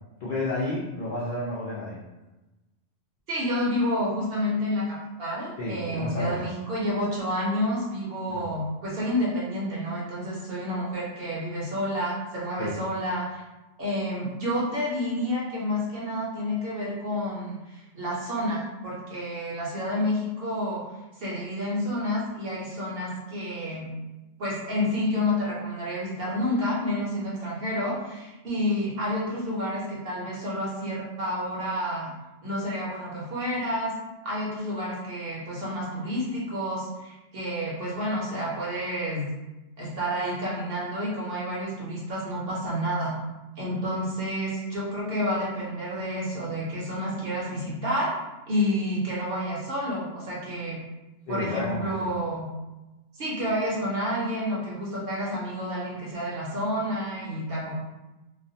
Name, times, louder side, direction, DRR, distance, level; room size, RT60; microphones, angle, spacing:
voice 1, 0.2-2.0 5.6-6.5 8.3-8.5 12.6-12.7 51.3-52.1, left 1 dB, 60° left, -8 dB, 0.5 m, -31 dB
voice 2, 3.3-13.4 13.8-20.8 21.2-23.9 24.4-32.1 32.4-33.9 34.2-39.3 39.8-43.2 43.6-48.2 48.5-50.8 51.3-52.5 53.2-57.7, equal, 60° right, -6 dB, 0.7 m, -29 dB
2.3 x 2.1 x 2.6 m, 1.1 s
omnidirectional pair, 1.3 m